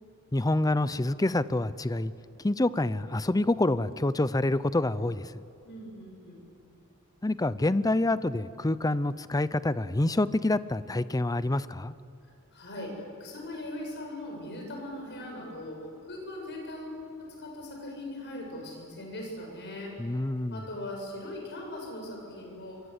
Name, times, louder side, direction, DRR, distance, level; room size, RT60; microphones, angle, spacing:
voice 1, 0.3-2.1 2.4-5.4 7.2-11.9 20.0-20.6, left 2 dB, 15° left, 16 dB, 0.6 m, -27 dB
voice 2, 5.6-6.4 12.5-19.9 20.5-22.8, left 1 dB, 55° left, 1 dB, 7.1 m, -40 dB
26.5 x 23.0 x 8.1 m, 2.5 s
head